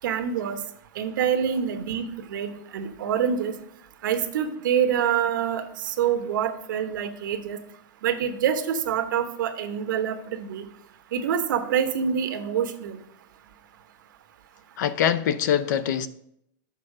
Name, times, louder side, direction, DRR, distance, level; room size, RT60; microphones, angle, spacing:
voice 1, 0.0-0.6 1.0-3.5 4.0-7.6 8.0-10.7 11.1-13.0, right 8 dB, 85° right, 1.0 m, -26 dB
voice 2, 14.8-16.1, left 9 dB, 70° left, 0.6 m, -23 dB
6.9 x 5.4 x 4.9 m
supercardioid pair, 170°, 10 cm